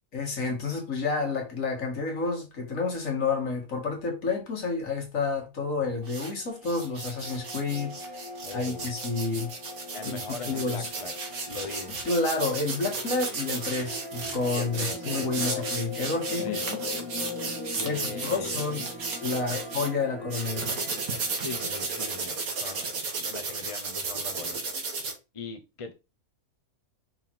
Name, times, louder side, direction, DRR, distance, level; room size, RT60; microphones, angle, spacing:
voice 1, 0.1-7.9 8.5-9.5 10.0-10.9 12.1-16.9 17.8-18.9 19.2-20.8, left 3 dB, 60° left, 2.2 m, -30 dB
sound 1, 6.0-6.3 6.6-19.9 20.3-25.1, right 4 dB, 70° right, 1.9 m, -34 dB
sound 2, 6.1-23.0, left 3 dB, 5° right, 1.3 m, -41 dB
voice 2, 8.4-8.9 9.9-11.1 11.5-11.9 14.5-15.7 16.4-16.6 17.8-18.6 19.5-19.6 21.4-22.9 23.1-24.6 25.3-25.9, left 4 dB, 25° left, 0.8 m, -39 dB
5.8 x 3.8 x 4.4 m
omnidirectional pair, 1.6 m